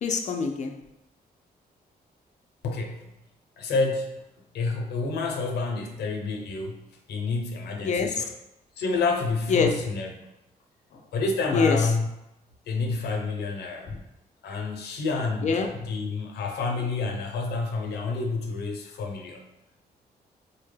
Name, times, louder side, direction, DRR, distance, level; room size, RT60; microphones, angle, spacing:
voice 1, 0.0-0.7 7.8-8.2 9.5-9.8 11.5-11.9 13.8-14.0 15.4-15.8, left 5 dB, 45° left, 4 dB, 0.5 m, -25 dB
voice 2, 2.6-3.1 3.6-8.3 8.8-10.3 10.9-12.1 12.7-13.9 14.4-15.5 15.8-19.4, left 3 dB, 85° left, 3 dB, 0.6 m, -29 dB
4.2 x 2.2 x 3.3 m, 0.88 s
cardioid pair, 80°, 17 cm